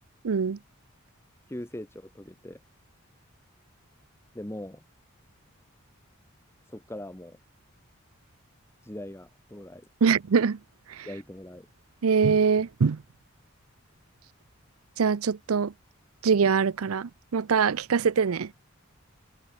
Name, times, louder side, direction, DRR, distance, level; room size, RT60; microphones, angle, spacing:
voice 1, 0.2-0.6 10.0-10.6 10.9-11.1 12.0-13.0 15.0-15.7 16.2-18.5, right 6 dB, 85° right, 0.5 m, -23 dB
voice 2, 1.5-2.6 4.3-4.8 6.7-7.4 8.8-9.9 11.0-11.7, left 1 dB, 10° left, 1.2 m, -40 dB
head